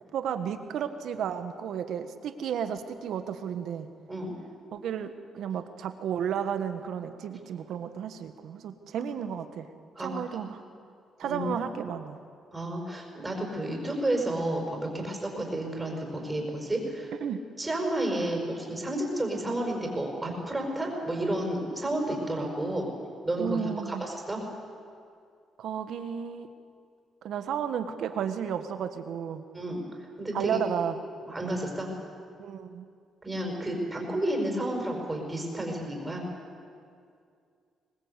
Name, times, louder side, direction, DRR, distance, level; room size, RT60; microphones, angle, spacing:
voice 1, 0.1-3.9 4.7-9.7 10.0-10.6 11.2-12.2 17.2-17.4 23.4-24.0 25.6-26.5 27.2-29.4 30.3-31.0 32.4-32.9, right 8 dB, 75° right, 9 dB, 1.4 m, -33 dB
voice 2, 12.5-17.1 17.6-22.9 23.2-24.4 29.5-29.8 30.2-30.6 31.3-31.9 33.2-36.2, right 1 dB, 15° right, 1 dB, 5.6 m, -31 dB
23.0 x 19.5 x 8.3 m, 2.3 s
cardioid pair, 90°, 0 cm